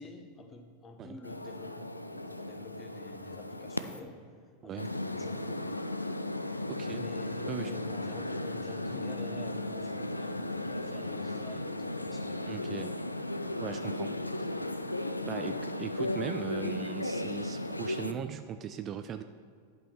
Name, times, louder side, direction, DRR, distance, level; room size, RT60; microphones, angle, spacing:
voice 1, 0.0-4.2 4.6-5.7 6.8-12.7, left 2 dB, 20° left, 5 dB, 1.0 m, -48 dB
sound 1, 1.2-4.0 4.8-18.1, left 1 dB, 85° left, 0.3 m, -35 dB
voice 2, 6.7-7.0 7.5-7.7 12.5-12.9 13.6-14.1 15.2-19.2, right 9 dB, 30° right, 9 dB, 0.3 m, -39 dB
11.0 x 5.4 x 4.4 m, 2.1 s
figure-of-eight pair, 90°, 0 cm